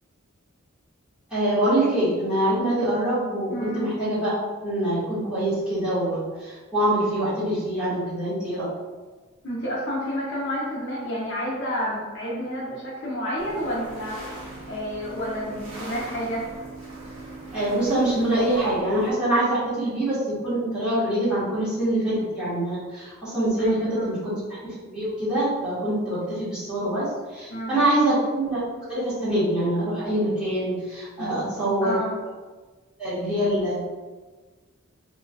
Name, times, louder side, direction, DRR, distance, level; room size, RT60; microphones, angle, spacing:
voice 1, 1.3-4.3 4.6-8.7 17.5-24.4 24.8-27.1 27.3-28.6 28.9-32.0 33.0-33.9, right 1 dB, 5° right, -13 dB, 1.3 m, -24 dB
voice 2, 3.5-3.9 9.4-14.3 14.7-16.5 23.6-24.1 27.5-27.8 31.2-31.4 31.8-32.1, equal, 60° left, -6 dB, 0.7 m, -30 dB
sound 1, 13.4-19.1, right 2 dB, 65° right, 0.9 m, -40 dB
3.2 x 2.3 x 2.3 m, 1.3 s
head